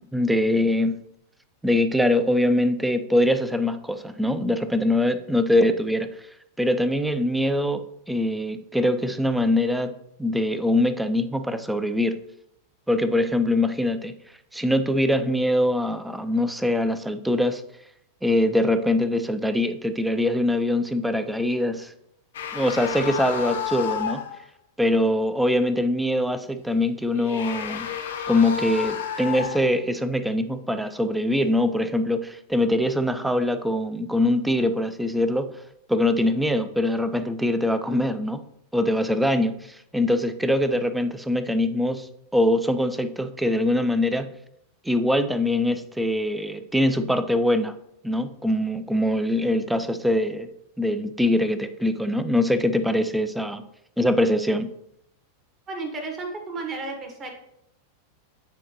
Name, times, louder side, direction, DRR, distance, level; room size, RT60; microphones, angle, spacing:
voice 1, 0.1-1.0 1.6-6.3 6.6-9.9 10.2-12.2 12.9-14.1 14.5-17.6 18.2-21.9 22.5-24.2 24.8-27.9 28.3-35.5 35.9-38.4 38.7-44.3 44.8-47.8 48.0-50.5 50.8-53.6 54.0-54.7, left 1 dB, 5° right, 10 dB, 0.5 m, -23 dB
sound 1, 22.3-24.4 27.1-29.8, left 8 dB, 60° left, 0.7 m, -31 dB
voice 2, 55.7-57.3, right 3 dB, 25° right, 2 dB, 1.4 m, -33 dB
9.1 x 4.3 x 2.9 m, 0.77 s
figure-of-eight pair, 90°, 0 cm